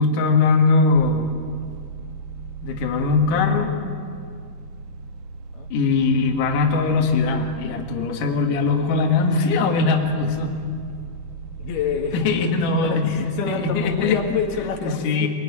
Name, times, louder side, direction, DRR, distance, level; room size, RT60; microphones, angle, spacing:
voice 1, 0.0-1.3 2.6-3.7 5.7-10.6 12.1-13.1 13.5-14.2 14.8-15.3, left 4 dB, 60° left, 2 dB, 3.2 m, -20 dB
sound 1, 0.9-14.5, right 4 dB, 60° right, 2.4 m, -38 dB
voice 2, 11.6-12.3 12.8-15.3, left 6 dB, 85° left, 2 dB, 3.8 m, -26 dB
25.0 x 19.5 x 9.8 m, 2.2 s
omnidirectional pair, 4.4 m